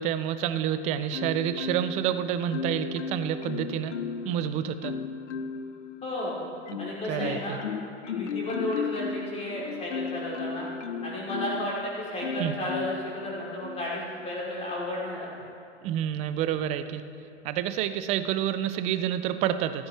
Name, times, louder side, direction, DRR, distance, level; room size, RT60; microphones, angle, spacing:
voice 1, 0.0-3.9 4.2-4.9 7.1-7.6 12.4-12.5 15.8-17.0 17.4-19.9, right 10 dB, 20° right, 11 dB, 0.3 m, -28 dB
Marimba xylophone, 1.1-2.1 2.5-4.3 4.8-5.7 6.2-11.7 12.2-13.1 13.6-13.9, left 6 dB, 80° left, 0.8 m, -34 dB
voice 2, 6.0-6.4 6.8-7.6 8.1-10.7 11.0-15.3, left 1 dB, 20° left, -6 dB, 3.3 m, -33 dB
14.0 x 13.5 x 3.3 m, 2.9 s
hypercardioid pair, 115°, 36 cm